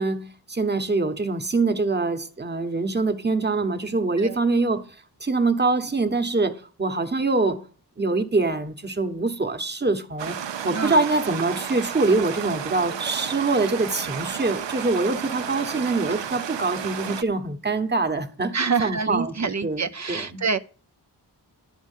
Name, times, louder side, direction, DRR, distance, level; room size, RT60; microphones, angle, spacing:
voice 1, 0.0-4.9 5.2-7.6 8.0-10.4 10.6-20.4, right 3 dB, 25° right, 1.1 m, -24 dB
Stream, 10.2-17.2, right 8 dB, 80° right, 0.7 m, -32 dB
voice 2, 10.7-11.0 18.5-20.6, right 5 dB, 40° right, 0.5 m, -26 dB
11.0 x 5.0 x 8.2 m
wide cardioid pair, 90°, 43 cm